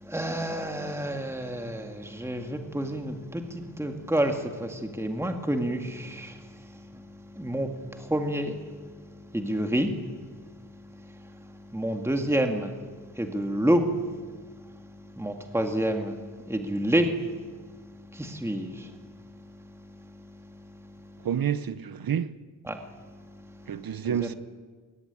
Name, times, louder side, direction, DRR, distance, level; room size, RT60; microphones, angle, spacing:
voice 1, 0.0-6.8 7.4-8.6 9.3-10.0 11.7-12.7 13.1-13.8 15.2-16.2 16.5-17.1 18.1-18.9 22.7-22.8 24.0-24.4, right 1 dB, 5° right, 2.1 m, -28 dB
voice 2, 21.2-22.4 23.7-24.3, right 8 dB, 65° right, 0.9 m, -29 dB
22.0 x 20.0 x 9.6 m
wide cardioid pair, 100°, 39 cm